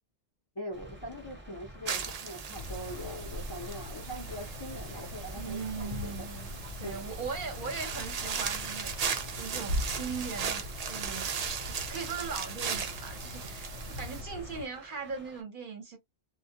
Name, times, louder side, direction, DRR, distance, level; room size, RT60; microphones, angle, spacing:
voice 1, 0.6-6.3 6.8-7.1, equal, 30° left, 0.4 m, -42 dB
sound 1, 0.7-15.4, right 1 dB, 15° right, 0.6 m, -50 dB
sound 2, 1.9-14.2, right 6 dB, 70° right, 0.3 m, -38 dB
sound 3, 2.5-14.7, left 1 dB, 80° left, 0.9 m, -41 dB
voice 2, 5.3-6.5 6.8-9.0 9.3-11.3 11.7-16.0, right 5 dB, 50° right, 0.8 m, -39 dB
2.2 x 2.1 x 2.7 m
omnidirectional pair, 1.2 m